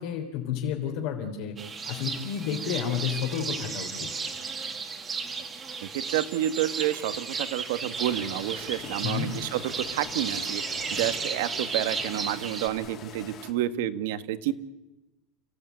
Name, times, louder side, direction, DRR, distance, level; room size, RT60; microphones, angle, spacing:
voice 1, 0.0-1.6 1.9-4.1 9.0-9.3, left 8 dB, 50° left, 0 dB, 3.4 m, -31 dB
sound 1, 1.6-12.7, right 5 dB, 15° right, 2.2 m, -34 dB
voice 2, 5.8-9.6 9.9-10.6 10.9-14.5, right 13 dB, 60° right, 11 dB, 1.6 m, -29 dB
sound 2, 7.9-13.5, left 6 dB, 25° left, 3.0 m, -44 dB
30.0 x 15.5 x 9.5 m, 0.99 s
supercardioid pair, 175°, 0 cm